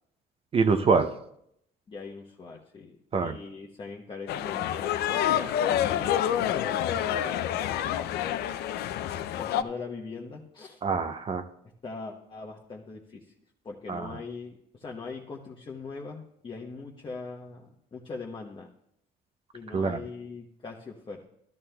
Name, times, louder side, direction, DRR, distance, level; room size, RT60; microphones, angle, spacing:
voice 1, 0.5-1.1 3.1-3.4 10.8-11.4 13.9-14.2 19.7-20.0, right 4 dB, 35° right, 9 dB, 0.6 m, -25 dB
voice 2, 1.9-7.5 9.3-10.8 11.8-13.3 13.6-18.7 19.5-21.2, left 4 dB, 30° left, 0 dB, 0.9 m, -41 dB
sound 1, 4.3-9.6, left 10 dB, 75° left, 0.5 m, -28 dB
13.0 x 12.5 x 2.3 m, 0.75 s
cardioid pair, 110°, 17 cm